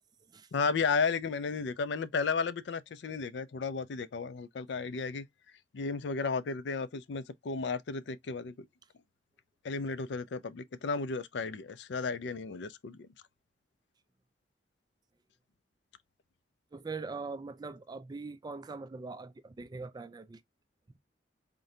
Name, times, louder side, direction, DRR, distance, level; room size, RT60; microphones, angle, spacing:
voice 1, 0.5-5.3 5.7-8.7 9.6-13.1, left 4 dB, 70° left, 0.4 m, -33 dB
voice 2, 16.7-20.4, right 4 dB, 25° right, 0.4 m, -42 dB
3.8 x 2.7 x 3.1 m
head